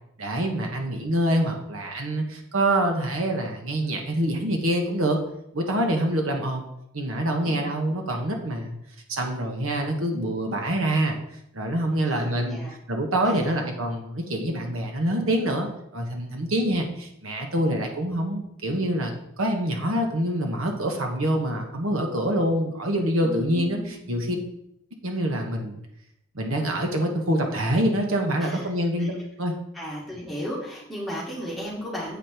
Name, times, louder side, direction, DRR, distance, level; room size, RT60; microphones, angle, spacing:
voice 1, 0.2-5.2 5.5-6.7 6.9-8.8 9.1-11.2 11.5-12.6 12.9-24.4 24.9-25.8 26.3-29.5, right 1 dB, 80° right, 3 dB, 1.4 m, -26 dB
voice 2, 12.1-12.7 13.3-13.5 23.2-24.1 28.4-28.7 29.0-29.1 29.7-32.2, equal, ahead, -6 dB, 2.0 m, -35 dB
7.6 x 5.0 x 4.5 m, 0.79 s
head